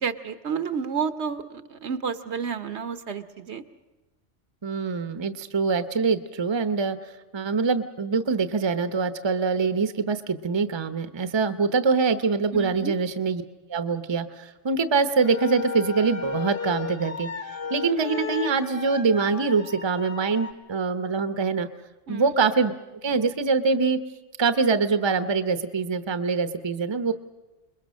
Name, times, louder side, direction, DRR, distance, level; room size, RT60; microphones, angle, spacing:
voice 1, 0.0-3.6 12.5-12.9 22.1-22.3, right 6 dB, 70° right, 11 dB, 1.2 m, -30 dB
voice 2, 4.6-13.4 13.7-17.3 17.7-21.7 22.1-22.7 23.0-24.0 24.4-27.1, right 4 dB, 25° right, 11 dB, 0.8 m, -24 dB
sound 1, 15.1-20.5, left 6 dB, 55° left, 1.6 m, -34 dB
28.5 x 21.5 x 6.3 m, 1.1 s
omnidirectional pair, 1.2 m